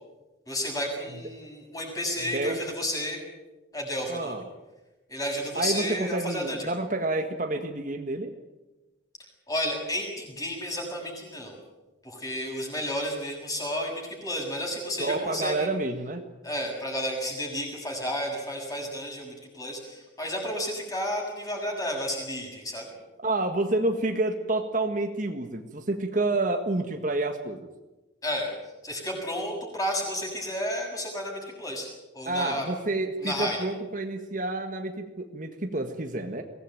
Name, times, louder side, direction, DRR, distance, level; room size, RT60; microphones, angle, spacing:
voice 1, 0.5-3.2 3.7-4.4 5.1-6.7 9.5-11.6 12.0-15.7 16.4-22.9 28.2-28.5 28.8-32.7 33.2-33.6, equal, 20° left, 1 dB, 7.1 m, -32 dB
voice 2, 2.2-2.6 4.1-4.4 5.5-8.3 15.0-16.2 23.2-27.7 32.2-36.4, right 2 dB, 45° right, 5 dB, 1.7 m, -29 dB
23.0 x 18.5 x 9.1 m, 1.1 s
head